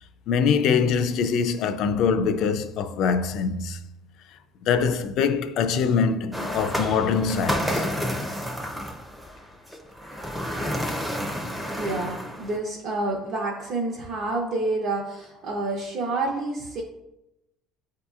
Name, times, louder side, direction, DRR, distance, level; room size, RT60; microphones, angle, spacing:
voice 1, 0.3-3.8 4.6-7.9, left 6 dB, 55° left, 0.3 m, -23 dB
sound 1, 6.3-12.6, equal, 5° right, 0.5 m, -30 dB
voice 2, 11.8-16.8, right 2 dB, 50° right, 0.6 m, -28 dB
8.0 x 2.7 x 2.3 m
cardioid pair, 155°, 0 cm